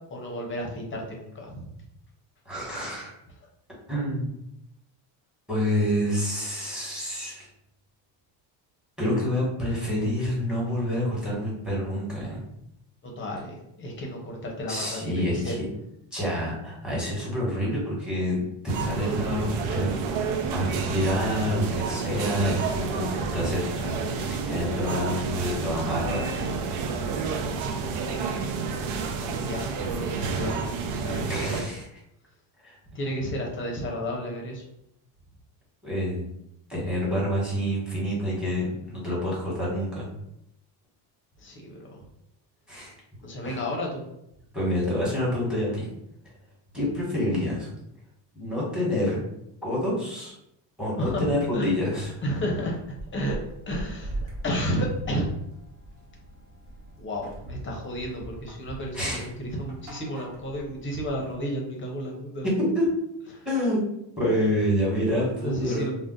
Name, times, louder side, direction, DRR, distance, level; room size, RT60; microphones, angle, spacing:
voice 1, 0.1-1.7 13.0-15.5 18.8-19.0 29.3-31.7 32.9-34.6 41.4-42.0 43.2-44.0 51.0-51.3 51.5-51.7 52.2-52.8 53.1-53.4 53.7-54.2 54.4-55.3 57.0-62.5 63.3-63.5 65.4-65.9, equal, 25° left, 0 dB, 0.7 m, -32 dB
voice 2, 2.4-3.1 3.9-4.3 5.5-7.5 9.0-12.4 14.7-15.7 16.1-20.1 20.5-26.4 31.2-32.0 32.6-32.8 35.8-36.3 36.7-40.1 42.7-42.9 43.4-43.6 44.5-45.9 46.7-47.7 48.3-49.2 49.6-50.3 50.8-52.1 58.9-59.3 62.4-62.9 63.4-63.9 64.2-65.9, equal, ahead, -6 dB, 1.2 m, -27 dB
sound 1, 18.7-31.6, right 5 dB, 75° right, 0.6 m, -30 dB
sound 2, 51.3-61.3, right 1 dB, 55° right, 1.2 m, -42 dB
2.5 x 2.1 x 3.7 m, 0.80 s
cardioid pair, 135°, 48 cm